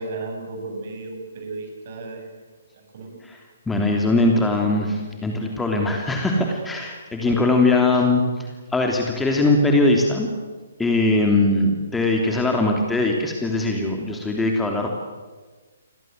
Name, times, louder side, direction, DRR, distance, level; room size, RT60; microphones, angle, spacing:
voice 1, 0.0-2.3 2.7-3.2 7.2-7.5, right 3 dB, 45° right, 4 dB, 7.5 m, -34 dB
voice 2, 3.7-10.3 10.8-14.9, left 2 dB, 5° left, 1 dB, 3.2 m, -21 dB
29.5 x 24.0 x 8.1 m, 1.4 s
figure-of-eight pair, 130°, 0 cm